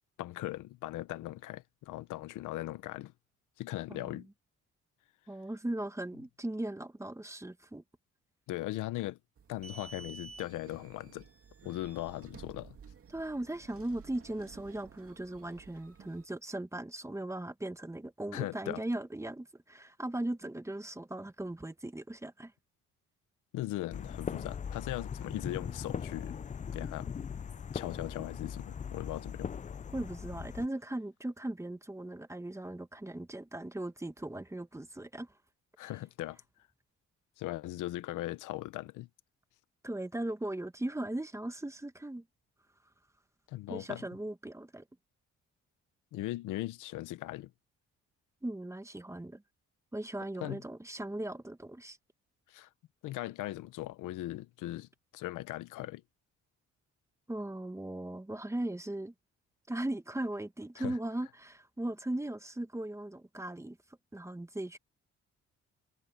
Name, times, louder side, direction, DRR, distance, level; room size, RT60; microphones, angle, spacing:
voice 1, 0.2-3.1 3.6-4.3 8.5-9.2 9.5-11.2 11.6-12.8 18.3-18.8 23.5-26.4 26.7-27.1 27.7-29.5 35.8-36.4 37.4-39.1 43.5-44.0 46.1-47.5 50.4-50.6 52.5-52.7 53.0-56.0 60.8-61.0, left 16 dB, 90° left, 1.0 m, -39 dB
voice 2, 3.9-4.2 5.3-7.8 13.1-22.5 29.9-35.3 39.8-42.2 43.7-44.8 48.4-49.4 49.9-52.0 57.3-59.1 59.7-63.8 64.1-64.8, right 1 dB, 10° right, 1.4 m, -38 dB
sound 1, 9.4-16.2, right 5 dB, 50° right, 2.3 m, -53 dB
sound 2, 23.9-30.7, left 7 dB, 25° left, 0.4 m, -40 dB
cardioid pair, 90°, 30 cm